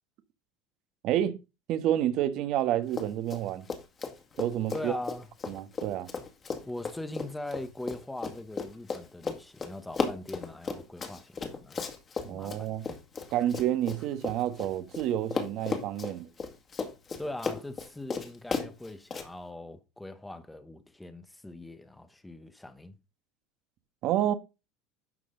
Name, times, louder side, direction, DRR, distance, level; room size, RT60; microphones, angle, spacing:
voice 1, 1.0-1.4 1.7-3.6 4.4-4.9 5.5-6.1 12.2-12.8 13.3-16.3 24.0-24.3, right 12 dB, 55° right, 1.3 m, -29 dB
Run, 2.9-3.4 3.7-15.0 15.3-19.3, left 5 dB, 30° left, 2.1 m, -35 dB
voice 2, 4.7-5.3 6.6-11.8 12.3-12.9 17.2-22.9, left 1 dB, 5° left, 1.1 m, -41 dB
11.0 x 6.2 x 3.8 m
supercardioid pair, 120°, 0 cm